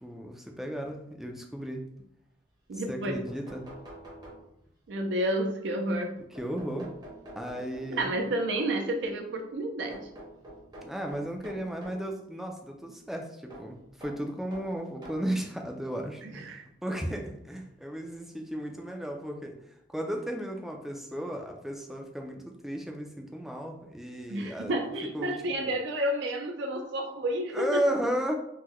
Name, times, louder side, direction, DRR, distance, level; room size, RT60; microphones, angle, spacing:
voice 1, 0.0-1.8 2.9-3.7 6.4-6.9 7.4-8.1 10.8-19.5 19.9-24.9 25.1-25.7 27.5-28.3, equal, ahead, 2 dB, 0.3 m, -34 dB
voice 2, 2.7-3.2 4.9-6.2 7.9-10.1 16.2-16.6 24.3-27.8, right 1 dB, 70° right, 4 dB, 0.4 m, -30 dB
sound 1, 3.1-4.9 6.3-8.4 9.9-12.1 13.5-15.4 16.2-16.3 17.7-17.8 18.1-18.2, right 1 dB, 20° right, 0.7 m, -47 dB
3.7 x 2.1 x 3.0 m, 0.79 s
head